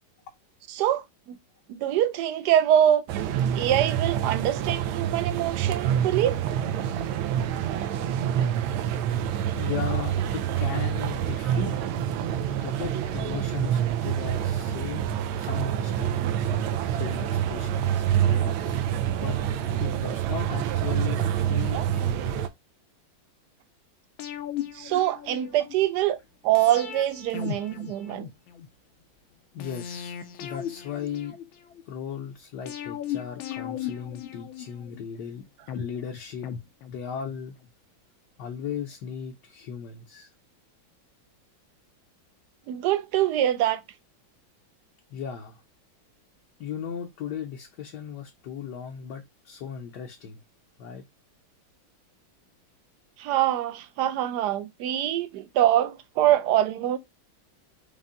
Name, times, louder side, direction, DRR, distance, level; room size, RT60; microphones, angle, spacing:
voice 1, 0.7-1.4 1.7-3.0 3.5-6.4 24.7-26.2 26.4-28.3 42.7-43.8 53.2-57.0, right 12 dB, 70° right, 1.0 m, -24 dB
sound 1, 3.1-22.5, right 10 dB, 90° right, 1.4 m, -27 dB
voice 2, 9.5-11.7 12.5-15.1 15.4-16.2 17.0-18.8 19.1-19.4 19.8-22.4 29.5-30.1 30.4-31.3 31.9-35.4 35.7-36.5 36.9-37.6 38.4-40.3 45.1-45.6 46.6-50.4 50.8-51.0, left 8 dB, 65° left, 1.2 m, -36 dB
sound 2, 24.2-25.8 26.5-28.7 29.6-31.8 32.7-35.0 35.7-37.3 37.6-37.7, left 10 dB, 80° left, 1.5 m, -37 dB
5.5 x 2.2 x 3.6 m
omnidirectional pair, 2.2 m